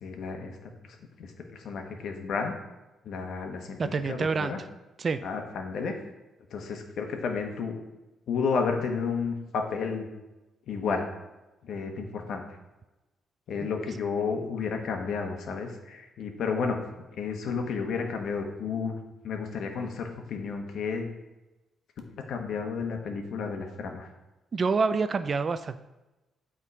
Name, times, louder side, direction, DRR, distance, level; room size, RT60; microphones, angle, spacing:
voice 1, 0.0-2.5 3.0-3.8 4.1-4.6 5.2-5.9 6.5-7.8 8.3-10.1 10.7-11.0 11.6-12.4 13.5-16.8 17.2-19.0 19.2-21.1 22.3-24.1, left 5 dB, 70° left, 3 dB, 1.1 m, -32 dB
voice 2, 3.8-4.5 5.0-5.2 24.5-25.8, right 4 dB, 40° right, 11 dB, 0.3 m, -27 dB
8.3 x 3.7 x 4.7 m, 1.0 s
cardioid pair, 90°, 0 cm